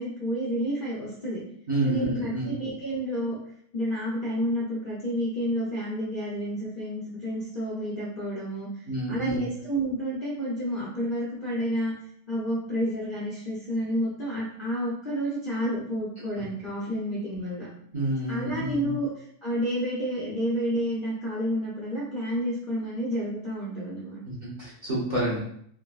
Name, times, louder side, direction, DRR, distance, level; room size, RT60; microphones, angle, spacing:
voice 1, 0.0-1.4 1.8-3.4 3.7-8.7 9.1-11.9 12.3-17.7 18.3-19.1 19.4-24.2, equal, 50° left, -8 dB, 0.6 m, -30 dB
voice 2, 1.7-2.5 8.9-9.4 17.9-18.9 24.2-25.4, right 1 dB, 40° right, -8 dB, 0.7 m, -28 dB
3.5 x 2.1 x 2.3 m, 0.66 s
omnidirectional pair, 1.7 m